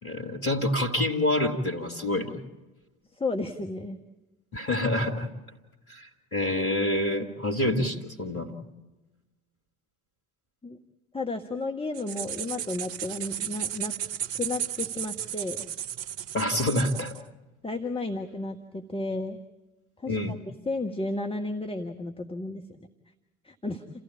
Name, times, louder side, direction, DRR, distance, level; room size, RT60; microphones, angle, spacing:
voice 1, 0.0-2.4 4.5-5.3 5.9-8.5 16.3-17.1 20.1-20.4, left 1 dB, 85° left, 3 dB, 2.2 m, -27 dB
voice 2, 3.1-4.0 10.6-10.8 11.1-13.9 14.4-15.7 17.6-19.4 20.0-20.2 20.6-22.6 23.4-23.8, left 2 dB, 15° left, 4 dB, 1.5 m, -32 dB
sound 1, 11.9-17.2, right 10 dB, 55° right, 0.9 m, -34 dB
29.0 x 15.0 x 8.4 m, 1.1 s
figure-of-eight pair, 50°, 42 cm